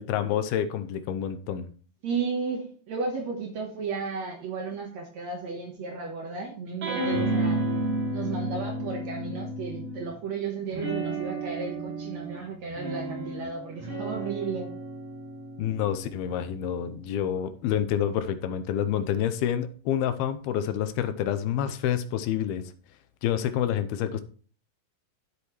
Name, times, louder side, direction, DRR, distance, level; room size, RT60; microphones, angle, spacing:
voice 1, 0.0-1.7 15.6-22.7 23.2-24.2, left 10 dB, 85° left, 11 dB, 2.7 m, -28 dB
voice 2, 2.0-7.6 8.1-14.7, right 5 dB, 60° right, 2 dB, 2.1 m, -34 dB
sound 1, 6.8-10.2 10.7-17.5, right 2 dB, 40° right, 4.7 m, -32 dB
10.5 x 8.1 x 3.1 m, 0.41 s
omnidirectional pair, 4.5 m